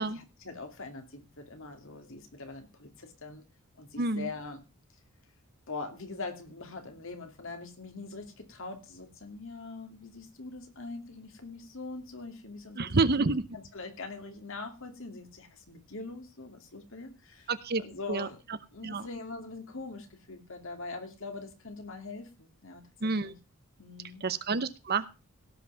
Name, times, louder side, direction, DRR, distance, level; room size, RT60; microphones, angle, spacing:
voice 1, 0.1-3.4 3.8-4.6 5.7-12.9 13.5-17.5 17.8-18.4 18.7-23.4 23.8-24.2, left 3 dB, 60° left, 6 dB, 2.6 m, -43 dB
voice 2, 4.0-4.3 12.7-13.5 17.5-17.8 18.1-18.3 18.8-19.1 23.0-23.3 24.2-25.1, right 3 dB, 45° right, 14 dB, 0.9 m, -28 dB
17.5 x 5.8 x 5.7 m, 0.30 s
head